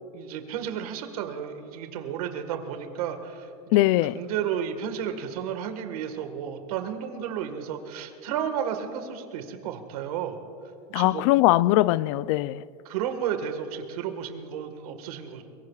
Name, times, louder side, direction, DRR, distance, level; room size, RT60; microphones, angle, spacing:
voice 1, 0.1-3.8 4.1-10.4 10.9-11.2 12.8-15.4, right 8 dB, 80° right, 1.6 m, -32 dB
voice 2, 3.7-4.2 10.9-12.6, left 17 dB, 60° left, 0.4 m, -21 dB
23.0 x 22.5 x 2.4 m
supercardioid pair, 150°, 19 cm